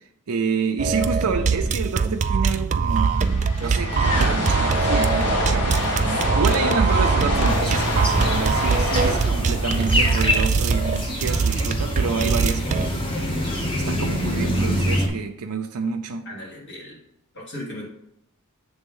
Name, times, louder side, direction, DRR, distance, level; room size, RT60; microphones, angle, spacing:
voice 1, 0.3-3.2 3.6-12.9 13.4-16.3, right 5 dB, 90° right, 3 dB, 0.6 m, -28 dB
sound 1, 0.8-12.9, right 5 dB, 35° right, 0.3 m, -23 dB
sound 2, 2.8-11.0, left 1 dB, 85° left, 1.9 m, -26 dB
sound 3, 7.5-15.1, equal, 25° left, 1.0 m, -26 dB
voice 2, 16.2-17.0 17.3-17.9, left 1 dB, 55° left, -6 dB, 2.7 m, -37 dB
7.9 x 3.5 x 5.4 m, 0.77 s
head